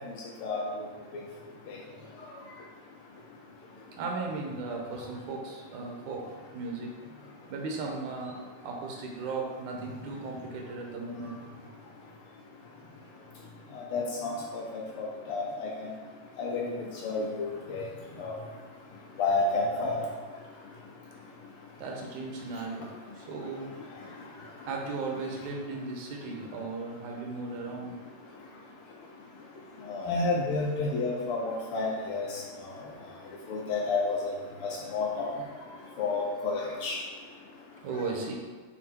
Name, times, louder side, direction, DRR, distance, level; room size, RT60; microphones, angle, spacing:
voice 1, 4.0-6.9 7.5-11.4 21.8-23.7 24.6-28.0 35.9-36.0 37.8-38.3, right 3 dB, 85° right, 0 dB, 2.4 m, -36 dB
voice 2, 13.7-14.6 15.0-15.7 16.4-16.7 17.0-17.8 18.2-18.3 19.2-20.0 29.9-32.3 33.5-34.2 34.9-35.3 36.0-37.0, left 3 dB, 85° left, -2 dB, 1.2 m, -30 dB
6.4 x 4.5 x 4.4 m, 1.4 s
omnidirectional pair, 3.4 m